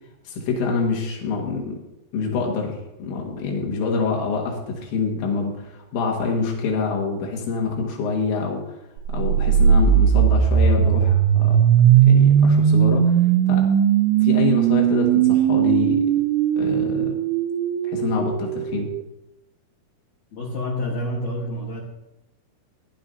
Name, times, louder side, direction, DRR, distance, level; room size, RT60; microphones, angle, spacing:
voice 1, 0.3-1.8 2.1-8.6 9.1-13.2 13.5-13.7 14.2-16.0 16.6-17.2 17.9-18.9, left 4 dB, 85° left, 0 dB, 4.1 m, -26 dB
sound 1, 9.1-19.0, right 9 dB, 85° right, 2.4 m, -18 dB
voice 2, 20.3-21.8, left 1 dB, 65° left, -3 dB, 1.8 m, -28 dB
18.5 x 11.0 x 2.8 m, 0.92 s
omnidirectional pair, 5.2 m